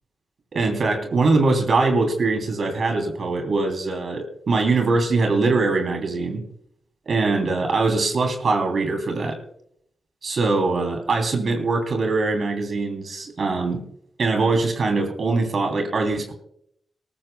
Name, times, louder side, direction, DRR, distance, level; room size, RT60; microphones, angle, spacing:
voice 1, 0.5-6.4 7.1-9.4 10.2-13.8 14.2-16.3, right 3 dB, 65° right, 5 dB, 2.9 m, -22 dB
19.0 x 14.0 x 2.2 m, 0.70 s
supercardioid pair, 45°, 0 cm